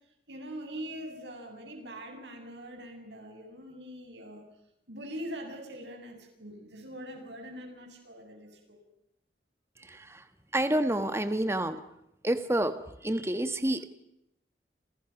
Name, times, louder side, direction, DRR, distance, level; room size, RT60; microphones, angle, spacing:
voice 1, 0.3-4.5 4.9-8.8, equal, 85° right, 3 dB, 7.8 m, -43 dB
voice 2, 9.8-10.3 10.5-11.8 12.2-13.9, right 1 dB, 15° right, 9 dB, 1.4 m, -29 dB
29.5 x 27.5 x 6.1 m, 0.80 s
head